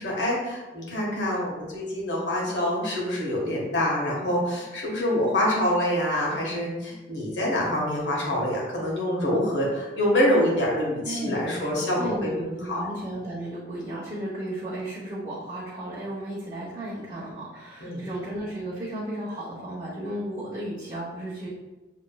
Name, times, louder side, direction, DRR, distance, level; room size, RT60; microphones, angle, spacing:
voice 1, 0.0-12.8 17.8-18.0, left 1 dB, 80° left, -3 dB, 1.5 m, -26 dB
voice 2, 11.0-21.5, right 1 dB, 30° right, -9 dB, 1.1 m, -34 dB
6.7 x 3.2 x 2.3 m, 1.1 s
head